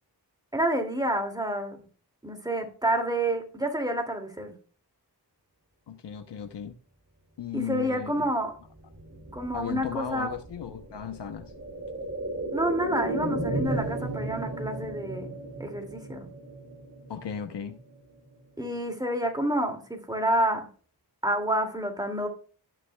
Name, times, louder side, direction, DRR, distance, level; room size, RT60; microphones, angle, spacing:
voice 1, 0.5-1.8 2.2-4.5 7.5-8.5 9.3-10.3 12.5-15.3 15.6-16.3 18.6-20.7 21.2-22.3, right 1 dB, 10° right, 2.4 m, -28 dB
voice 2, 5.9-6.8 7.4-8.3 9.5-11.5 17.1-17.8, left 8 dB, 90° left, 0.9 m, -36 dB
sound 1, 8.6-18.4 18.8-18.9, right 2 dB, 35° right, 2.4 m, -35 dB
17.5 x 6.3 x 2.3 m
wide cardioid pair, 75°, 41 cm